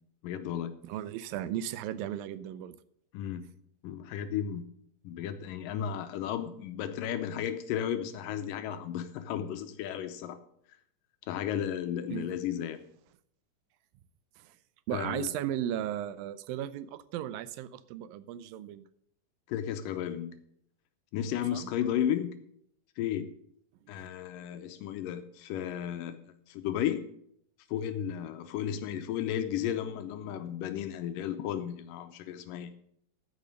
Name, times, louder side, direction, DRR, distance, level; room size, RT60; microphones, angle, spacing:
voice 1, 0.2-0.8 3.1-3.4 3.8-4.6 5.0-10.4 11.3-12.8 14.9-15.3 19.5-20.4 21.1-22.4 23.0-23.3 23.9-26.2 26.5-27.1 27.7-32.7, left 10 dB, 80° left, 9 dB, 2.3 m, -34 dB
voice 2, 0.8-2.8 12.1-12.4 14.4-14.5 14.9-18.8 21.5-21.7, right 11 dB, 85° right, 14 dB, 2.4 m, -36 dB
13.5 x 5.2 x 6.4 m, 0.70 s
omnidirectional pair, 4.0 m